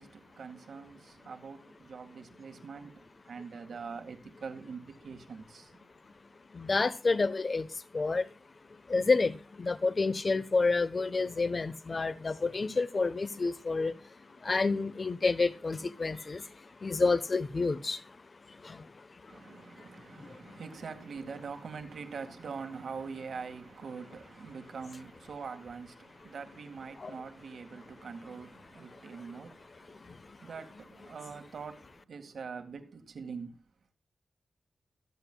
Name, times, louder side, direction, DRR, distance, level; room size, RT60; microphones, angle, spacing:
voice 1, 0.0-5.9 19.3-33.6, right 5 dB, 80° right, 1.9 m, -44 dB
voice 2, 6.5-7.7 7.9-8.3 8.9-13.9 14.4-16.5 16.8-18.0 18.6-18.9 19.5-19.6 20.2-20.6 27.0-27.1 30.0-30.2, left 3 dB, 45° left, 1.0 m, -29 dB
24.5 x 8.3 x 2.3 m
wide cardioid pair, 85°, 0 cm